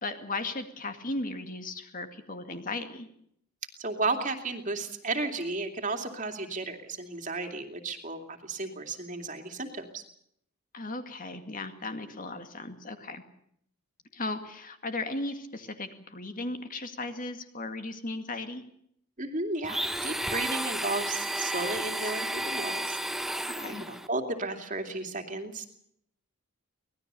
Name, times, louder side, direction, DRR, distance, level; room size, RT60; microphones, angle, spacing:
voice 1, 0.0-3.1 10.7-13.2 14.1-18.6 23.5-23.9, left 2 dB, 40° left, 7 dB, 2.1 m, -36 dB
voice 2, 3.8-10.0 19.2-23.0 23.6-25.7, right 3 dB, 35° right, 5 dB, 2.7 m, -33 dB
Domestic sounds home sounds, 19.6-24.1, right 1 dB, ahead, 0.9 m, -32 dB
25.0 x 19.0 x 6.9 m, 0.70 s
head